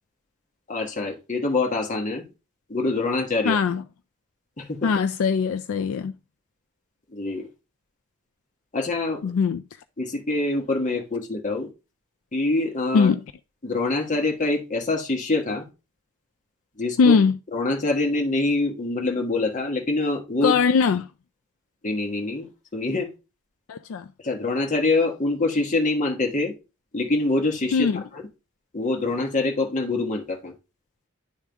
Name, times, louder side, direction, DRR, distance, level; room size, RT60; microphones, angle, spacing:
voice 1, 0.7-2.3 2.7-3.6 4.6-4.9 7.1-7.5 8.7-9.2 10.0-11.7 12.3-13.1 13.6-15.6 16.8-17.1 17.5-20.6 21.8-23.1 24.2-26.5 26.9-27.9 28.1-28.3 28.7-30.5, left 2 dB, 35° left, 1.4 m, -25 dB
voice 2, 3.4-3.8 4.8-6.1 9.2-9.6 12.9-13.2 17.0-17.4 20.4-21.1 23.7-24.1 27.7-28.0, left 5 dB, 65° left, 0.4 m, -20 dB
10.5 x 3.6 x 3.4 m
head